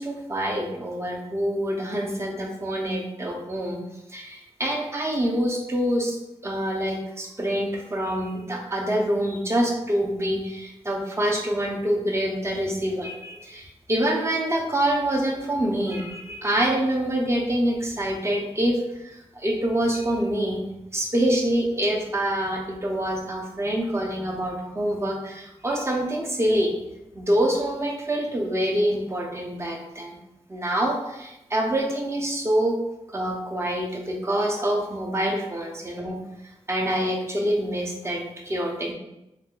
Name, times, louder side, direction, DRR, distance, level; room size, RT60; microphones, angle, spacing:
voice 1, 0.0-3.8 4.1-6.2 6.4-20.6 20.9-26.7 27.1-30.2 30.5-32.8 33.1-36.2 36.7-38.9, right 1 dB, 25° right, 0 dB, 0.5 m, -26 dB
3.4 x 2.4 x 2.2 m, 0.91 s
wide cardioid pair, 100°, 11 cm